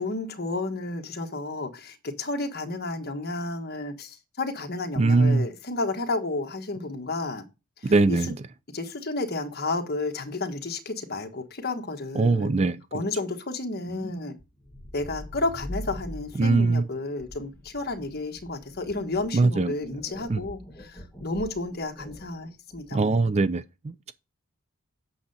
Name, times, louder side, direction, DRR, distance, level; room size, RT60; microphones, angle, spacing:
voice 1, 0.0-7.4 7.8-8.2 8.7-12.5 12.9-14.3 14.9-23.3, left 2 dB, 50° left, 1.4 m, -32 dB
voice 2, 5.0-5.5 7.8-8.4 12.2-12.8 16.4-16.8 19.3-19.7 20.3-20.4 22.9-24.1, right 3 dB, 30° right, 0.4 m, -22 dB
sound 1, 13.9-23.0, equal, 10° left, 1.9 m, -42 dB
8.6 x 6.6 x 4.1 m
head